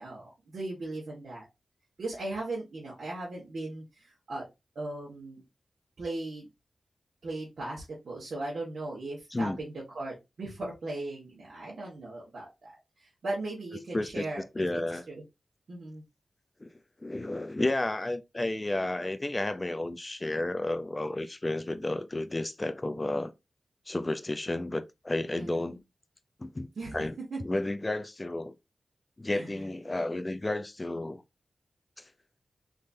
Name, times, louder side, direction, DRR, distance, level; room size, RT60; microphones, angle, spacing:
voice 1, 0.0-1.4 2.0-4.4 4.7-5.4 6.0-6.5 7.2-12.7 13.0-14.4 15.1-15.2 15.7-16.0 25.3-25.8 26.7-27.0 27.3-27.4 29.3-29.6, right 2 dB, 75° right, 1.6 m, -38 dB
voice 2, 13.9-14.2 14.6-15.0 16.6-16.7 17.0-23.3 23.9-25.8 26.4-27.1 27.4-28.5 29.2-31.2 32.0-32.1, left 2 dB, 30° left, 0.5 m, -32 dB
3.7 x 3.2 x 2.7 m
cardioid pair, 50°, 0 cm